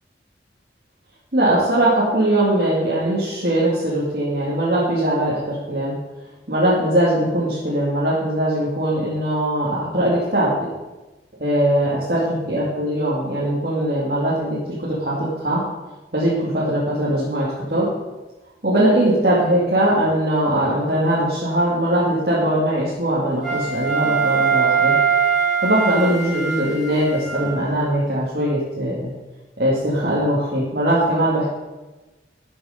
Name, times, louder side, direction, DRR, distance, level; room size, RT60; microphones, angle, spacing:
voice 1, 1.3-5.9 6.5-10.5 11.4-15.6 16.1-17.9 18.6-24.9 25.6-29.1 29.6-31.5, right 1 dB, 55° right, -8 dB, 2.4 m, -20 dB
Wind instrument woodwind instrument, 23.4-27.7, right 6 dB, ahead, 3.3 m, -21 dB
12.5 x 7.0 x 5.2 m, 1.1 s
head